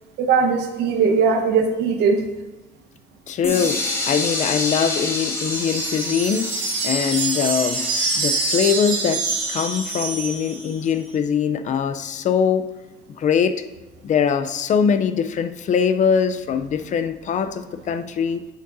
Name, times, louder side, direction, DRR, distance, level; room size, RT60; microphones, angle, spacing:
voice 1, 0.2-2.2, right 5 dB, 80° right, 5 dB, 1.1 m, -19 dB
voice 2, 3.3-6.5 6.8-7.8 8.2-12.7 13.2-13.6 14.0-18.5, left 7 dB, 45° left, 10 dB, 0.5 m, -22 dB
sound 1, 3.4-9.3, left 2 dB, 15° left, 2.1 m, -29 dB
sound 2, 5.4-10.8, right 3 dB, 55° right, 2.3 m, -26 dB
8.2 x 7.6 x 2.6 m, 1.0 s
cardioid pair, 110°, 17 cm